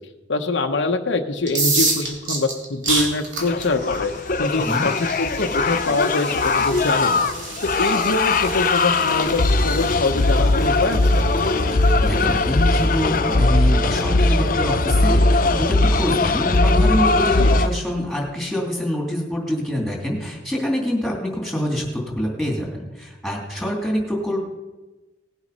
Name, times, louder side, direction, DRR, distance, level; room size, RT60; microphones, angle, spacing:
voice 1, 0.3-4.1 4.4-7.3 7.6-11.2 17.4-17.6, left 2 dB, 85° left, 5 dB, 1.0 m, -24 dB
sound 1, 1.4-13.2, right 3 dB, 85° right, 3.2 m, -30 dB
sound 2, 3.4-17.7, left 2 dB, 50° left, 0.6 m, -19 dB
voice 2, 4.5-4.9 11.7-24.4, equal, ahead, -2 dB, 3.0 m, -26 dB
sound 3, 10.6-17.3, equal, 25° right, 1.0 m, -32 dB
18.5 x 8.1 x 5.5 m, 1.2 s
head